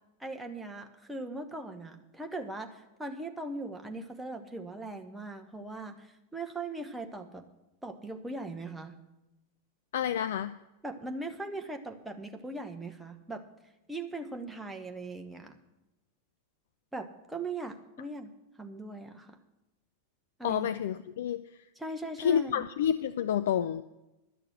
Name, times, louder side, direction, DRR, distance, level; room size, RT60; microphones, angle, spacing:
voice 1, 0.2-7.4 7.8-8.9 10.8-13.4 13.9-15.6 16.9-18.3 18.6-19.4 20.4-20.7 21.8-22.6, right 2 dB, 5° right, 4 dB, 1.1 m, -39 dB
voice 2, 9.9-10.5 20.4-21.4 22.2-23.8, left 9 dB, 60° left, 12 dB, 0.4 m, -29 dB
11.5 x 6.6 x 7.9 m, 0.98 s
figure-of-eight pair, 90°, 0 cm